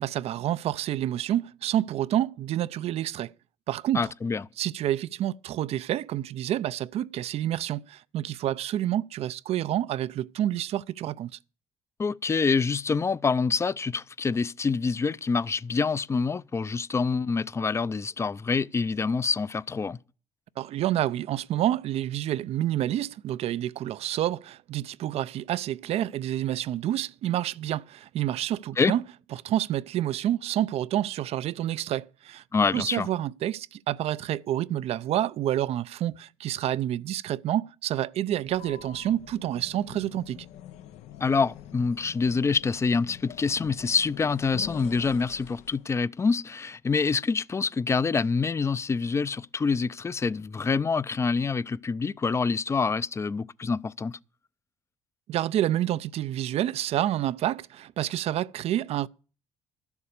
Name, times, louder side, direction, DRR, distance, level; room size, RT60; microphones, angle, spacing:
voice 1, 0.0-3.3 3.7-4.1 4.6-11.4 20.6-29.0 29.3-32.4 32.7-40.5 55.3-59.1, right 12 dB, 65° right, 0.5 m, -28 dB
voice 2, 3.9-4.4 12.0-20.0 28.8-28.9 32.5-33.1 41.2-54.2, left 4 dB, 25° left, 0.5 m, -26 dB
sound 1, 38.4-45.9, left 11 dB, 85° left, 0.7 m, -46 dB
12.5 x 7.2 x 6.6 m
cardioid pair, 90°, 11 cm